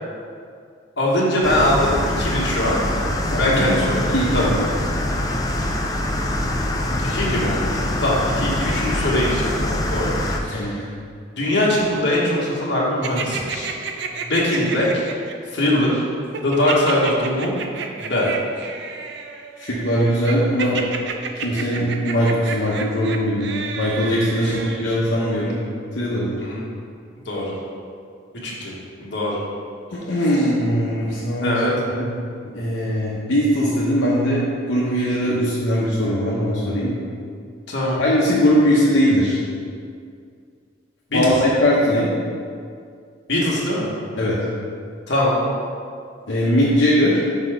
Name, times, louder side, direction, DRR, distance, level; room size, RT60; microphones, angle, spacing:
voice 1, 1.0-2.8 3.4-4.5 7.0-7.7 8.0-10.1 10.4-10.8 11.4-13.7 14.3-15.0 15.5-16.0 16.4-17.5 18.0-18.3 24.4-24.5 26.4-26.6 27.2-27.5 28.4-28.7 29.0-29.4 31.4-31.7 37.7-38.0 41.1-41.3 43.3-43.9 45.1-45.4, left 1 dB, 65° left, -5 dB, 1.4 m, -21 dB
sound 1, 1.4-10.4, left 1 dB, 20° left, 0.4 m, -24 dB
voice 2, 3.3-4.6 10.5-10.7 19.6-20.8 21.3-25.5 25.9-26.3 30.1-31.6 31.9-32.1 32.5-36.9 38.0-39.4 41.1-42.1 44.2-44.4 46.3-47.2, equal, 85° left, -6 dB, 0.9 m, -20 dB
sound 2, 13.0-15.3 16.3-24.8, right 5 dB, 60° right, 0.5 m, -31 dB
5.5 x 4.2 x 4.9 m, 2.2 s
head